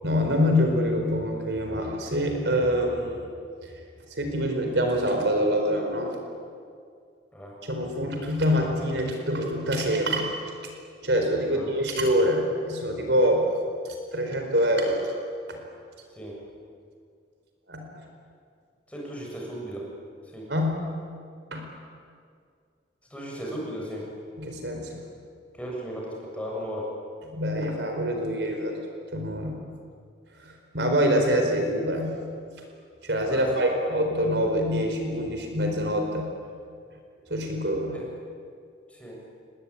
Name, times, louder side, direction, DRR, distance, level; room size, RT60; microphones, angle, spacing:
voice 1, 0.0-3.2 3.6-3.7 4.2-6.1 7.7-10.3 11.0-13.4 13.8-15.0 15.5-15.6 17.7-18.0 20.5-20.9 21.5-21.7 24.4-25.0 27.3-28.8 29.1-29.6 30.4-32.2 33.0-36.3 37.3-38.0, equal, 65° right, 3 dB, 4.6 m, -25 dB
voice 2, 18.9-19.9 20.3-20.5 23.1-24.1 25.5-26.9 33.3-33.9 37.9-38.1 38.9-39.2, equal, 5° left, -3 dB, 7.3 m, -36 dB
28.0 x 20.5 x 9.9 m, 2.2 s
head